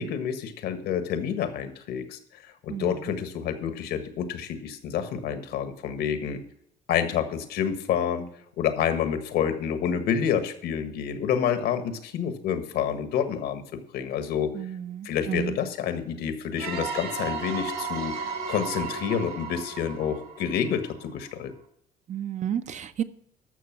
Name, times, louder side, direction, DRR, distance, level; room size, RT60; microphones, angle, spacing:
voice 1, 0.0-6.4 6.9-8.3 8.6-14.5 15.0-21.5, left 8 dB, 75° left, 1.5 m, -28 dB
voice 2, 14.5-15.6 22.1-23.0, right 9 dB, 45° right, 0.8 m, -32 dB
sound 1, 16.6-21.2, right 5 dB, 65° right, 2.5 m, -34 dB
12.5 x 6.6 x 6.0 m
cardioid pair, 110°, 17 cm